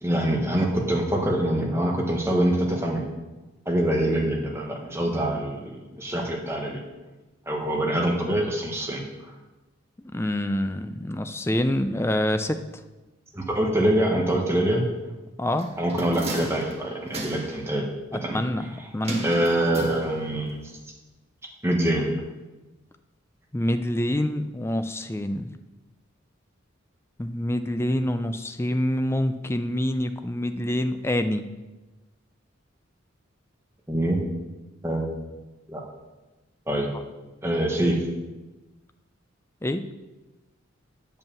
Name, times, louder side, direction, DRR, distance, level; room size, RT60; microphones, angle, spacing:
voice 1, 0.0-3.1 3.7-5.7 6.0-6.8 7.5-9.0 13.3-14.8 15.8-17.9 18.2-18.4 19.2-20.5 21.6-22.1 33.9-34.2 34.8-35.1 35.7-35.8 36.7-36.9 37.4-38.0, right 1 dB, 15° right, 0 dB, 1.3 m, -24 dB
voice 2, 10.1-12.6 15.4-15.7 18.3-19.2 23.5-25.5 27.2-31.5 39.6-39.9, left 1 dB, 10° left, 8 dB, 0.4 m, -26 dB
sound 1, 15.6-17.7 19.0-20.5 20.8-20.9, right 2 dB, 30° right, 1.2 m, -35 dB
9.2 x 5.4 x 7.1 m, 1.1 s
head